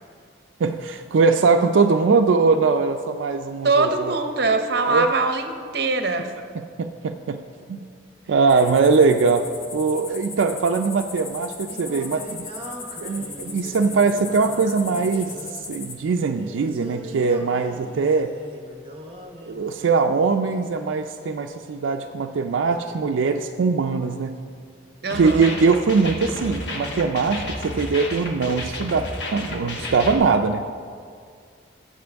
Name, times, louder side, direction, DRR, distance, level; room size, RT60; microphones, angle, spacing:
voice 1, 0.6-4.1 4.9-5.1 6.8-7.4 7.7-7.8 8.3-12.5 13.0-18.3 19.5-24.4 25.1-30.7, right 4 dB, 85° right, 5 dB, 0.4 m, -21 dB
voice 2, 3.6-6.3 25.0-25.5, right 3 dB, 55° right, 7 dB, 0.7 m, -22 dB
sound 1, 8.5-15.9, left 4 dB, 50° left, 1.1 m, -38 dB
Singing, 11.2-20.2, right 1 dB, 30° right, 0.9 m, -40 dB
sound 2, 25.1-30.1, left 1 dB, 70° left, 1.2 m, -32 dB
14.5 x 7.6 x 3.5 m, 2.2 s
head